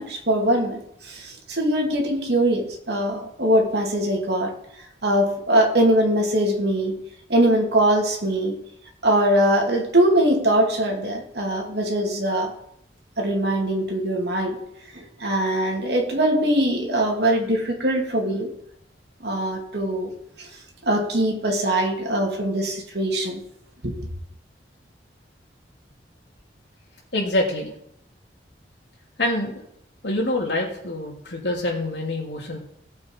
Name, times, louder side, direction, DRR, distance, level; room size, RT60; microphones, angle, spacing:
voice 1, 0.0-4.5 5.0-7.0 7.3-8.6 9.0-12.5 13.2-14.6 14.9-18.5 19.2-20.1 20.4-20.5 20.8-23.4 23.8-24.1, right 1 dB, 65° right, 1 dB, 2.7 m, -22 dB
voice 2, 27.1-27.7 29.2-29.6 30.0-32.6, left 1 dB, 75° left, 0 dB, 3.0 m, -25 dB
17.0 x 7.5 x 4.7 m, 0.73 s
head